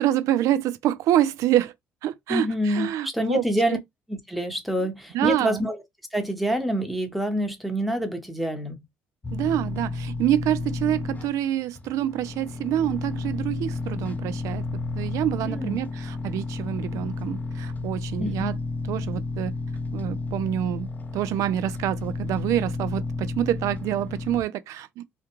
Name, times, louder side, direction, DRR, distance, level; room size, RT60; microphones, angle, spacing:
voice 1, 0.0-1.7 2.0-3.4 3.7-3.8 5.1-5.6 9.3-14.6 14.9-18.6 18.9-19.5 19.9-20.9 21.1-25.0, right 12 dB, 65° right, 0.3 m, -26 dB
voice 2, 2.3-3.8 4.1-5.8 6.1-8.8 15.4-15.8 18.2-18.5, equal, ahead, 0.9 m, -27 dB
sound 1, 9.2-24.4, left 3 dB, 25° left, 0.5 m, -32 dB
2.3 x 2.2 x 2.9 m
hypercardioid pair, 65°, 6 cm